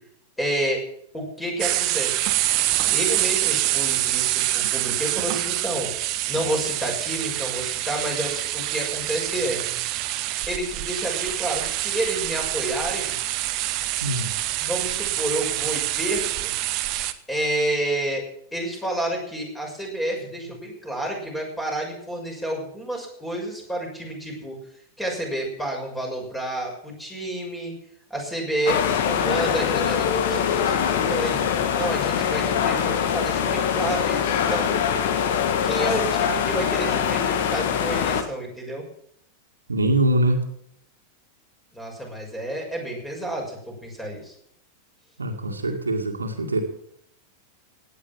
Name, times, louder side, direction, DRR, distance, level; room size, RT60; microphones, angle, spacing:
voice 1, 0.4-0.8 1.1-2.2 2.9-5.9 6.3-9.6 10.5-13.1 14.6-16.5 17.3-18.2 18.5-24.6 25.0-27.7 28.1-31.4 31.8-34.8 35.6-38.8 41.7-44.3, right 1 dB, 5° left, 0 dB, 6.5 m, -29 dB
sound 1, 1.6-17.1, right 15 dB, 40° right, 1.0 m, -26 dB
voice 2, 14.0-14.3 39.7-40.4 45.2-46.6, right 1 dB, 75° right, 3 dB, 2.2 m, -23 dB
sound 2, 28.7-38.2, left 8 dB, 55° left, 1.7 m, -23 dB
17.5 x 9.9 x 6.3 m, 0.69 s
figure-of-eight pair, 90°, 0 cm